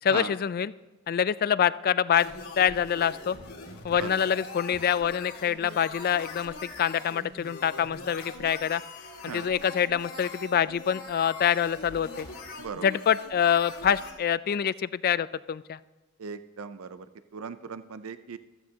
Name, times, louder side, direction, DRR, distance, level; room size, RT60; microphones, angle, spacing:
voice 1, 0.0-0.7 1.1-2.3 2.6-3.4 3.8-8.8 9.2-12.3 12.8-15.8, left 8 dB, 45° left, 17 dB, 0.3 m, -26 dB
Chaos Generator Talk, 2.2-14.1, left 3 dB, 75° left, 2.2 m, -42 dB
voice 2, 16.2-17.0 17.3-18.4, right 5 dB, 80° right, 11 dB, 0.5 m, -37 dB
15.0 x 14.0 x 2.8 m, 1.2 s
head